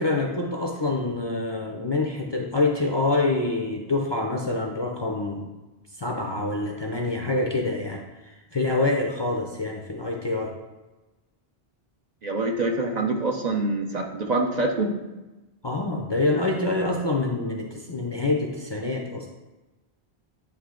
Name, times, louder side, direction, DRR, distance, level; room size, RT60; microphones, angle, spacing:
voice 1, 0.0-5.5 6.0-10.6 15.6-19.3, left 2 dB, 35° left, 0 dB, 0.5 m, -26 dB
voice 2, 12.2-14.9, right 2 dB, 50° right, 2 dB, 0.7 m, -25 dB
9.4 x 3.2 x 3.7 m, 1.1 s
omnidirectional pair, 1.0 m